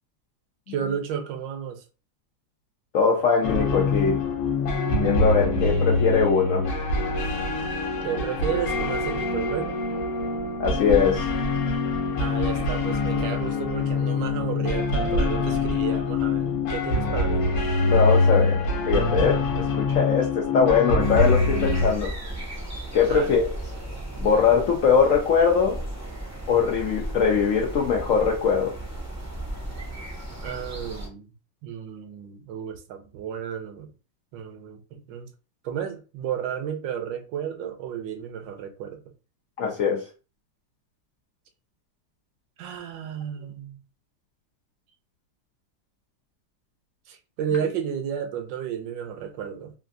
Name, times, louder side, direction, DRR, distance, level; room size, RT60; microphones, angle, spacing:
voice 1, 0.7-1.8 8.0-9.8 12.2-17.5 23.1-23.4 30.4-31.3 31.6-33.9 34.3-35.3 35.6-39.0 42.6-43.8 47.1-49.7, right 8 dB, 75° right, 1.2 m, -32 dB
voice 2, 2.9-4.2 5.0-6.7 10.6-11.3 17.9-22.1 22.9-23.5 24.2-25.8 26.5-28.8 39.6-40.1, left 6 dB, 85° left, 0.7 m, -22 dB
sound 1, 3.4-21.9, left 3 dB, 70° left, 1.4 m, -24 dB
sound 2, 21.0-31.1, right 1 dB, 20° right, 0.4 m, -35 dB
3.2 x 2.5 x 2.5 m
omnidirectional pair, 2.1 m